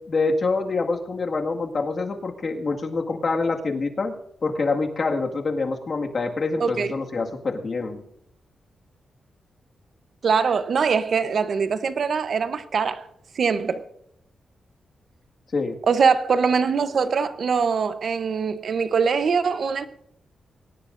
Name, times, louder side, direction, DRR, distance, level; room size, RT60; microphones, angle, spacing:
voice 1, 0.1-8.0 15.5-15.8, left 3 dB, 45° left, 1.9 m, -26 dB
voice 2, 6.6-6.9 10.2-13.0 13.4-13.8 15.9-19.9, right 5 dB, 60° right, 0.8 m, -22 dB
22.0 x 18.5 x 2.6 m
wide cardioid pair, 110°, 0 cm